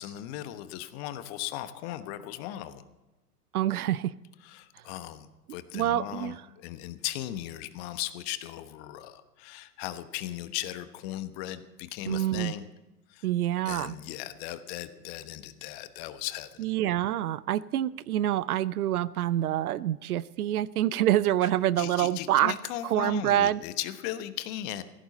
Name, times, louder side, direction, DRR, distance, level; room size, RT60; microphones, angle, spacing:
voice 1, 0.0-2.9 4.4-5.3 5.5-12.6 13.1-13.2 13.6-16.5 21.8-24.8, left 13 dB, 45° left, 12 dB, 1.2 m, -37 dB
voice 2, 3.5-4.1 5.7-6.4 12.1-12.5 13.2-14.0 16.6-22.5 22.8-23.6, right 12 dB, 70° right, 20 dB, 0.6 m, -26 dB
16.0 x 14.5 x 4.1 m, 1.1 s
hypercardioid pair, 100°, 47 cm